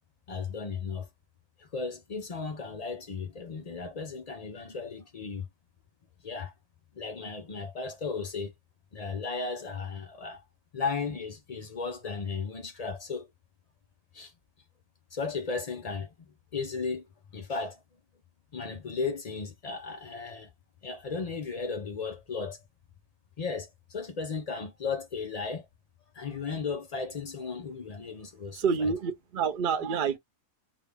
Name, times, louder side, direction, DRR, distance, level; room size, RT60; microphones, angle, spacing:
voice 1, 0.3-1.1 1.6-5.5 6.2-6.5 7.0-8.5 8.9-10.4 10.7-13.3 14.1-14.3 15.1-16.1 16.5-17.1 17.3-17.8 18.5-20.5 20.8-22.6 23.4-25.7 26.1-28.7, left 4 dB, 70° left, 0.3 m, -35 dB
voice 2, 28.5-30.2, right 6 dB, 55° right, 0.5 m, -28 dB
3.6 x 2.3 x 3.4 m
omnidirectional pair, 1.6 m